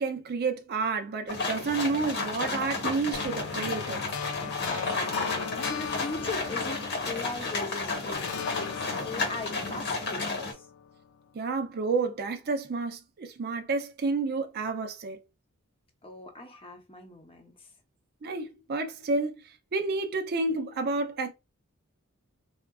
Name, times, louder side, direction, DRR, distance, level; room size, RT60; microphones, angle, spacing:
voice 1, 0.0-4.0 11.3-15.2 18.2-19.3 19.7-21.3, right 3 dB, 45° right, 0.5 m, -30 dB
sound 1, 1.3-10.5, left 3 dB, 55° left, 1.0 m, -32 dB
sound 2, 3.1-7.7 8.1-11.2, left 6 dB, 75° left, 0.5 m, -39 dB
voice 2, 4.6-10.6 16.0-17.7, left 2 dB, 25° left, 0.8 m, -40 dB
3.6 x 2.4 x 2.3 m
head